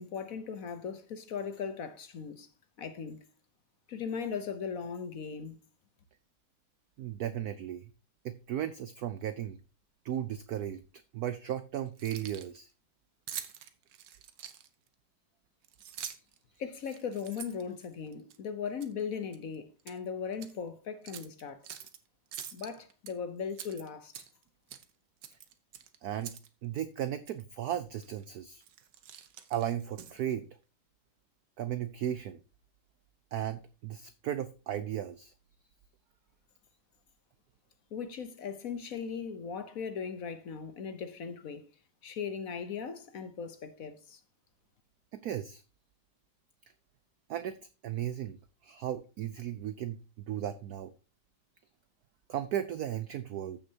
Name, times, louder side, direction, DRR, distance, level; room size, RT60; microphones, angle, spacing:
voice 1, 0.0-2.5 2.8-3.3 3.9-5.6 16.6-21.6 22.5-24.1 37.9-41.7 42.0-44.2, left 6 dB, 55° left, 1.0 m, -38 dB
voice 2, 7.0-7.8 8.2-9.6 10.0-10.8 11.1-12.7 26.0-26.4 26.6-28.6 29.5-30.5 31.6-32.4 33.3-35.3 45.1-45.6 47.3-47.6 47.8-48.4 48.6-50.0 50.3-50.9 52.3-53.6, right 11 dB, 80° right, 0.8 m, -35 dB
Keys jangling, 11.9-12.6 13.3-14.9 15.6-16.4 16.8-18.4 18.8-19.0 19.3-20.0 20.3-20.5 21.1-22.0 22.3-23.1 23.5-24.4 24.7-24.9 25.2-26.5 26.8-26.9 27.3-27.4 28.0-28.2 28.6-30.3, right 9 dB, 65° right, 1.4 m, -45 dB
14.0 x 6.4 x 2.8 m
omnidirectional pair, 2.3 m